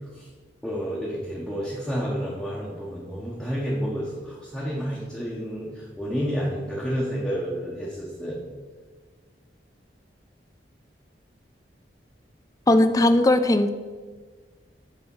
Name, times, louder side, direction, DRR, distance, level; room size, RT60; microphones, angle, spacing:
voice 1, 0.6-8.4, equal, ahead, -7 dB, 1.0 m, -30 dB
voice 2, 12.7-13.7, left 1 dB, 20° left, 9 dB, 0.3 m, -18 dB
8.5 x 3.2 x 5.5 m, 1.5 s
head